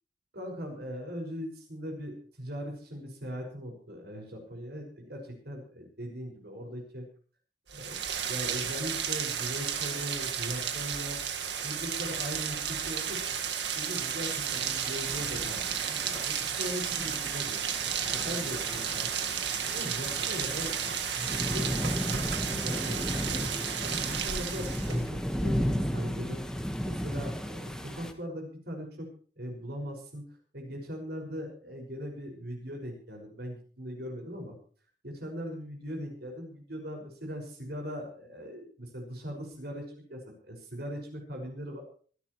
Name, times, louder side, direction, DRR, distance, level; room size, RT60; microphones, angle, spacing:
voice 1, 0.3-7.1 7.7-8.0 8.3-11.2 11.6-13.4 13.8-15.6 15.9-17.6 18.1-19.1 19.7-20.9 21.4-23.5 23.8-26.4 26.8-29.1 29.4-30.2 30.5-34.6 35.0-41.8, equal, 65° right, 2 dB, 5.9 m, -40 dB
Rain, 7.7-25.1, right 8 dB, 80° right, 1.9 m, -33 dB
sound 1, 14.5-28.1, equal, 5° left, 1.5 m, -35 dB
25.0 x 11.5 x 3.2 m, 0.42 s
head